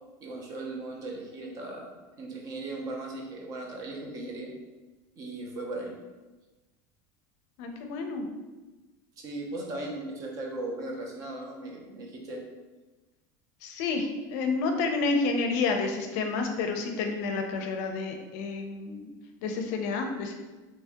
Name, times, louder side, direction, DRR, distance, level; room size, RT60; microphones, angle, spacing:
voice 1, 0.2-4.5 5.2-5.9 9.2-12.4, right 2 dB, 35° right, 0 dB, 0.6 m, -37 dB
voice 2, 7.6-8.3 13.6-19.1 19.4-20.3, left 4 dB, 60° left, 4 dB, 0.5 m, -29 dB
3.0 x 2.7 x 3.4 m, 1.2 s
cardioid pair, 165°, 10 cm